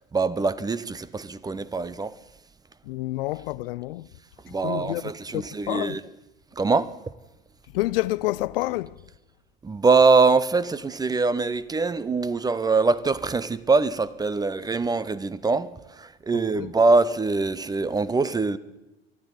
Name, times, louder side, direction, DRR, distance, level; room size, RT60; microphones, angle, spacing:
voice 1, 0.0-2.2 4.4-6.0 6.6-7.1 9.6-18.6, right 4 dB, 15° right, 0.6 m, -23 dB
voice 2, 2.8-4.1 4.5-6.0 7.7-9.0 16.5-16.7, left 18 dB, 65° left, 0.5 m, -29 dB
23.5 x 12.0 x 4.0 m
hypercardioid pair, 85°, 30 cm